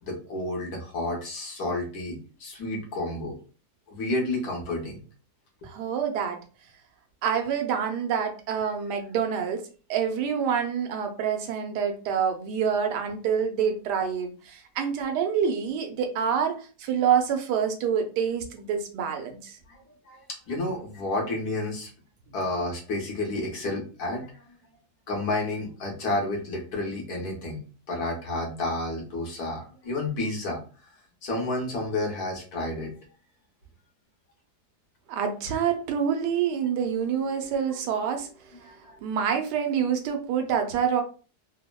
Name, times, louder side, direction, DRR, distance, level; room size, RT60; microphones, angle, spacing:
voice 1, 0.0-3.4 3.9-5.0 5.6-5.7 8.6-8.7 19.7-20.2 20.5-21.9 22.3-24.4 25.1-27.6 27.9-30.6 31.2-32.9 38.6-39.0, left 2 dB, 70° left, 0 dB, 1.4 m, -31 dB
voice 2, 5.6-6.4 7.2-9.6 9.9-19.6 22.4-22.5 35.1-38.6 39.0-41.0, right 7 dB, 85° right, 5 dB, 1.2 m, -27 dB
3.4 x 2.0 x 2.2 m, 0.36 s
omnidirectional pair, 1.7 m